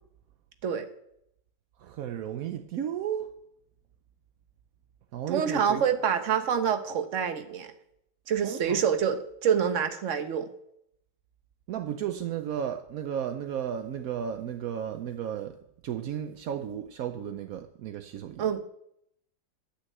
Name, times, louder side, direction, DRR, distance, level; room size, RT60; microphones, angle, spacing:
voice 1, 1.8-3.3 5.1-5.8 8.4-8.8 11.7-15.6 15.8-18.6, right 9 dB, 70° right, 7 dB, 0.9 m, -34 dB
voice 2, 5.3-7.7 8.3-10.5 18.4-18.6, right 7 dB, 50° right, 8 dB, 1.1 m, -26 dB
11.5 x 6.2 x 7.8 m, 0.77 s
omnidirectional pair, 2.1 m